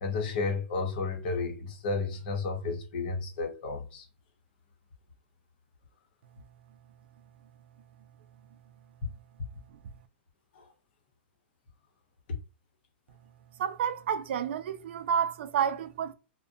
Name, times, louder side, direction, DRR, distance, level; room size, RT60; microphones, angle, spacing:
voice 1, 0.0-4.1 10.6-10.7, left 4 dB, 60° left, 0.8 m, -32 dB
voice 2, 13.6-16.1, right 8 dB, 75° right, 0.3 m, -30 dB
2.4 x 2.1 x 2.6 m
hypercardioid pair, 150°, 6 cm